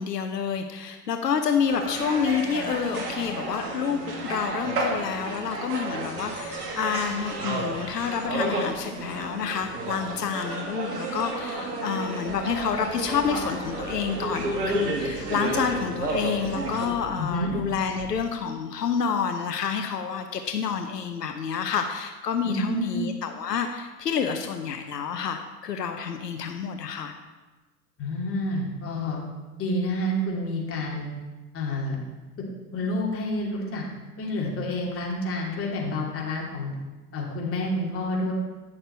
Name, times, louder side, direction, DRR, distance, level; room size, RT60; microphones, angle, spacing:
voice 1, 0.0-27.1, left 7 dB, 85° left, 6 dB, 0.8 m, -28 dB
sound 1, 1.7-16.9, right 2 dB, 80° right, 2.0 m, -31 dB
sound 2, 12.3-18.2, left 1 dB, 15° right, 1.9 m, -44 dB
voice 2, 17.2-17.5 22.4-23.0 28.0-29.2 29.6-31.1 31.5-32.0 32.7-33.8 34.2-36.7 37.1-38.3, left 1 dB, 30° left, -3 dB, 2.7 m, -28 dB
9.8 x 6.6 x 4.4 m, 1.2 s
hypercardioid pair, 90°, 47 cm